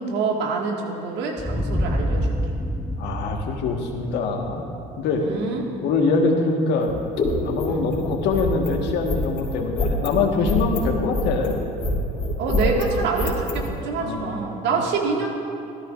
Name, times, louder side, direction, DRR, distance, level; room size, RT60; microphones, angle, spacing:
voice 1, 0.0-2.5 5.1-5.6 7.7-7.8 10.4-10.6 12.4-15.3, right 4 dB, 65° right, 0 dB, 2.0 m, -26 dB
sound 1, 1.4-6.0, equal, ahead, 0.8 m, -28 dB
voice 2, 3.0-4.6 5.0-5.2 5.8-6.9 7.4-11.5 14.0-14.3, left 4 dB, 65° left, 2 dB, 1.6 m, -23 dB
sound 2, 6.8-13.7, left 2 dB, 40° left, 3.0 m, -26 dB
17.0 x 13.5 x 2.6 m, 2.6 s
hypercardioid pair, 65°, 20 cm